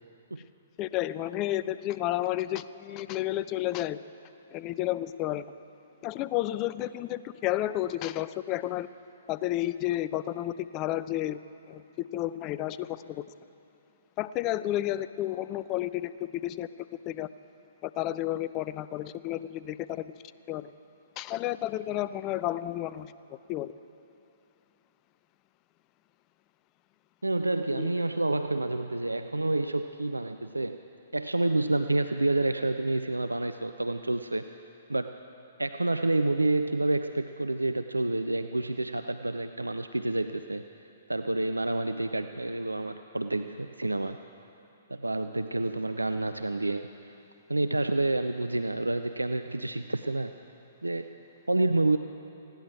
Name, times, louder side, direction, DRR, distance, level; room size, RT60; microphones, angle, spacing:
voice 1, 0.8-4.0 4.5-5.4 6.0-8.9 9.3-11.4 11.7-13.2 14.2-16.7 17.1-17.3 17.8-20.1 20.5-20.7 21.2-23.1 23.5-23.7 27.7-27.9, left 14 dB, 30° left, 16 dB, 0.4 m, -31 dB
voice 2, 27.2-30.8 31.1-34.6 34.9-35.2 35.6-40.6 41.1-44.2 44.9-47.1 47.5-50.3 50.8-51.2 51.5-52.0, right 2 dB, 85° right, 9 dB, 0.4 m, -28 dB
19.5 x 16.0 x 4.6 m, 2.8 s
figure-of-eight pair, 120°, 0 cm